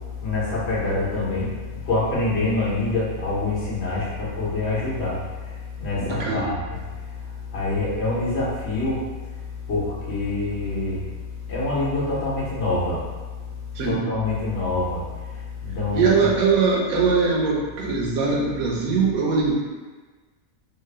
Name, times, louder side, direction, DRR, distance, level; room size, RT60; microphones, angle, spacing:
voice 1, 0.2-1.5 1.8-5.2 5.8-6.6 7.5-9.0 9.7-11.0 11.5-13.1 13.8-15.0 15.6-16.3, left 2 dB, 55° left, -8 dB, 1.1 m, -25 dB
voice 2, 6.0-6.5 13.7-14.0 15.9-19.5, right 5 dB, 90° right, -2 dB, 1.1 m, -21 dB
3.2 x 2.2 x 3.2 m, 1.3 s
omnidirectional pair, 1.5 m